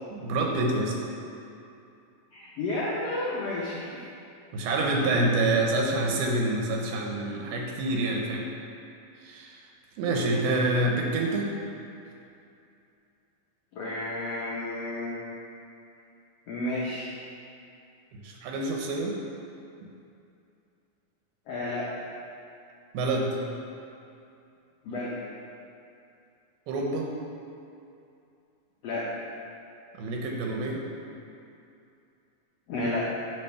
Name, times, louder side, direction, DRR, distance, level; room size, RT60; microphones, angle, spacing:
voice 1, 0.1-1.0 4.5-8.5 9.2-9.7 10.0-11.5 18.1-19.2 22.9-23.4 26.7-27.1 30.0-30.8, right 2 dB, 85° right, 0 dB, 2.7 m, -27 dB
voice 2, 2.3-4.0 13.7-15.2 16.5-17.1 21.5-21.9 24.8-25.1 28.8-29.1 32.7-33.1, left 2 dB, 90° left, -7 dB, 1.4 m, -31 dB
8.9 x 3.6 x 5.7 m, 2.6 s
omnidirectional pair, 4.2 m